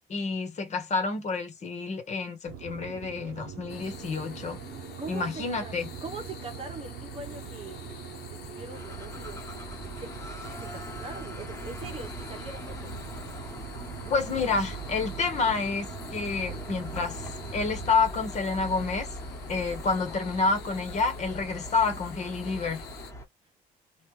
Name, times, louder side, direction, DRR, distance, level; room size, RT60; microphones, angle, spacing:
voice 1, 0.1-4.6 5.1-5.9 14.1-19.1 19.5-22.8, left 4 dB, 40° left, 1.3 m, -29 dB
sound 1, 2.4-17.9, right 9 dB, 80° right, 0.6 m, -42 dB
sound 2, 3.7-23.1, left 8 dB, 75° left, 1.0 m, -47 dB
voice 2, 5.0-5.7 6.0-7.9 8.3-9.4 10.0-10.1 10.6-12.9 14.2-14.3, right 4 dB, 35° right, 1.0 m, -42 dB
sound 3, 8.7-23.3, equal, 15° left, 1.5 m, -41 dB
3.3 x 2.5 x 3.2 m
cardioid pair, 110°, 17 cm